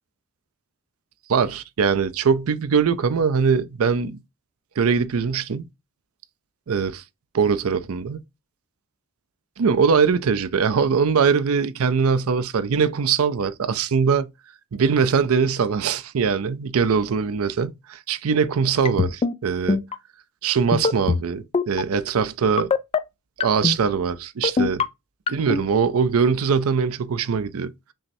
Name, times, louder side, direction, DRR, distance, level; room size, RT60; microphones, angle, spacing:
voice 1, 1.3-4.2 4.8-5.7 6.7-7.0 7.3-8.2 9.6-14.3 14.7-19.8 20.4-22.7 23.4-24.8 25.3-27.7, right 6 dB, 80° right, 0.5 m, -22 dB
sound 1, 18.8-19.3 19.7-19.9 20.7-21.2 21.5-21.8 22.6-23.0 23.4-23.8 24.4-24.8 25.3-25.6, left 5 dB, 25° left, 0.3 m, -21 dB
5.5 x 3.1 x 2.7 m
head